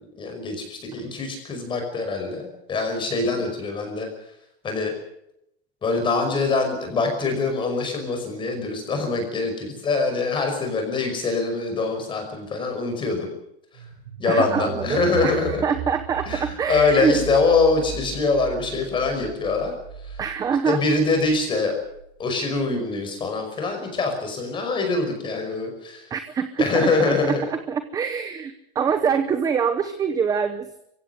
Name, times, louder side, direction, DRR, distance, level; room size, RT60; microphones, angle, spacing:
voice 1, 0.2-4.1 4.6-4.9 5.8-13.3 14.2-15.6 16.3-19.8 20.0-20.2 20.6-21.7 22.2-26.1 26.6-27.4, left 3 dB, 15° left, 4 dB, 5.4 m, -24 dB
sound 1, 13.7-22.4, right 10 dB, 50° right, 6.3 m, -37 dB
voice 2, 14.3-17.2 20.2-20.8 26.1-27.2 27.5-30.8, right 6 dB, 10° right, 9 dB, 0.8 m, -25 dB
25.0 x 16.0 x 8.1 m, 0.79 s
supercardioid pair, 175°, 31 cm